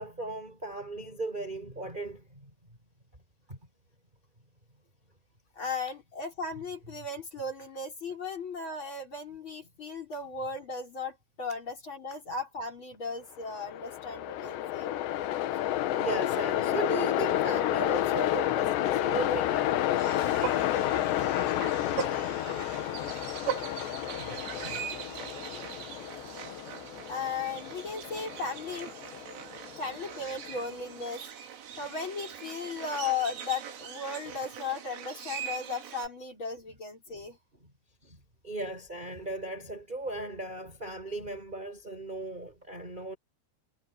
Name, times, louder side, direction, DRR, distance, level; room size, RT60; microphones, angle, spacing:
voice 1, 0.0-2.5 3.5-3.6 15.2-15.3 15.5-15.7 16.0-19.8 24.2-24.9 37.1-37.2 37.5-37.7 38.0-43.2, right 2 dB, 10° right, 5.6 m, -37 dB
voice 2, 5.6-14.9 27.1-28.9 29.8-31.2 31.8-37.4, left 4 dB, 25° left, 5.1 m, -36 dB
Train, 13.4-30.6, left 13 dB, 70° left, 3.2 m, -30 dB
sound 1, 20.0-36.1, right 9 dB, 85° right, 5.6 m, -41 dB
omnidirectional pair, 5.6 m